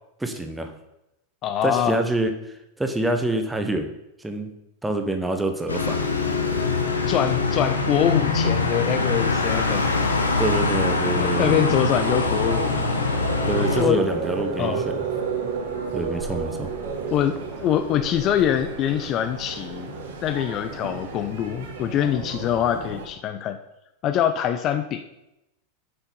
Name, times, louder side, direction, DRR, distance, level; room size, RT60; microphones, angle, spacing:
voice 1, 0.2-0.7 1.6-3.9 4.2-4.5 4.8-6.0 10.4-11.9 13.5-15.0 15.9-16.7, right 2 dB, 5° right, 6 dB, 1.0 m, -26 dB
voice 2, 1.4-2.0 7.1-9.9 11.2-12.8 13.8-14.0 14.6-14.8 17.1-19.9 20.2-23.6 24.0-25.0, left 10 dB, 35° left, 10 dB, 0.5 m, -24 dB
sound 1, 5.7-13.8, left 3 dB, 75° left, 1.1 m, -23 dB
sound 2, 12.0-23.1, right 5 dB, 55° right, 1.7 m, -32 dB
7.8 x 6.2 x 5.4 m, 0.90 s
figure-of-eight pair, 90°, 0 cm